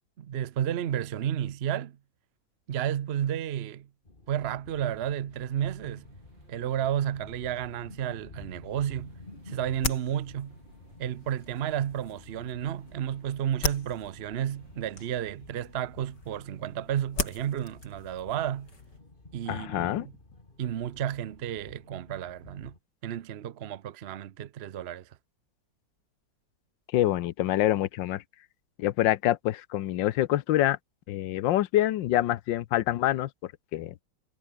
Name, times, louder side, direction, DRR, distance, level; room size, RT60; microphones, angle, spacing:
voice 1, 0.2-2.0 2.7-3.9 4.3-6.1 6.5-9.1 9.5-10.6 11.0-18.7 19.3-20.1 20.6-22.7 23.0-25.1, right 10 dB, 65° right, 0.6 m, -32 dB
sound 1, 4.0-22.8, left 2 dB, 25° left, 3.4 m, -52 dB
sound 2, 5.3-15.1, right 3 dB, 90° right, 5.9 m, -59 dB
sound 3, 8.7-19.0, left 3 dB, 65° left, 4.7 m, -39 dB
voice 2, 19.5-20.1 26.9-28.2 28.8-30.8 31.1-33.9, left 14 dB, 85° left, 1.5 m, -26 dB
omnidirectional pair, 2.0 m